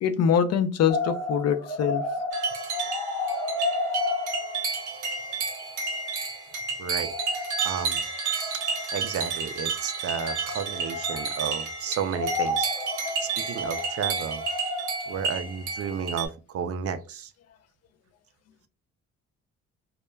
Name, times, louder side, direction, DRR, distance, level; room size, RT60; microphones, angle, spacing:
voice 1, 0.0-2.0, left 8 dB, 55° left, 0.4 m, -23 dB
sound 1, 0.9-6.3 6.5-6.6 7.0-9.3 10.0-11.8 12.1-16.0, left 2 dB, 5° left, 0.8 m, -33 dB
sound 2, 2.3-16.3, right 5 dB, 75° right, 0.9 m, -31 dB
voice 2, 6.8-8.0 8.5-8.6 8.9-12.7 13.2-14.4 15.1-17.3, right 7 dB, 50° right, 0.4 m, -33 dB
2.2 x 2.2 x 3.1 m
cardioid pair, 90°, 30 cm